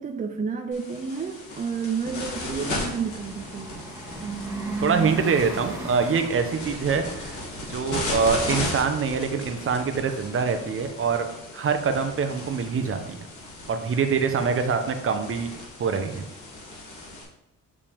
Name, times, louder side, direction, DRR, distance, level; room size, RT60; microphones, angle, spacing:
voice 1, 0.0-3.8 4.2-5.2, right 5 dB, 25° right, 5 dB, 0.5 m, -31 dB
sound 1, 0.7-17.2, left 2 dB, 75° left, 2.4 m, -36 dB
Bus, 2.1-14.4, right 1 dB, 10° right, 1.6 m, -43 dB
voice 2, 4.8-7.4 7.7-11.3 11.5-13.3 13.7-15.5 15.8-16.3, right 5 dB, 45° right, 7 dB, 0.9 m, -24 dB
6.8 x 5.5 x 3.5 m, 0.87 s
cardioid pair, 110°, 30 cm